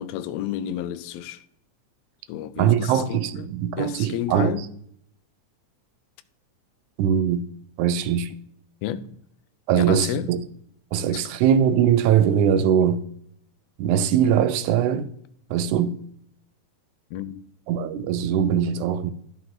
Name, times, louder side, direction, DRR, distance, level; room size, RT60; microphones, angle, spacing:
voice 1, 0.0-1.4 2.3-3.5 3.8-4.7 8.8-9.2 9.8-10.3 17.1-17.3, left 11 dB, 80° left, 1.5 m, -31 dB
voice 2, 2.6-4.7 7.0-7.4 7.8-8.3 9.7-10.4 10.9-13.0 13.8-15.1 15.5-16.0 17.7-19.1, right 8 dB, 80° right, 2.1 m, -21 dB
11.5 x 6.0 x 3.7 m
omnidirectional pair, 3.5 m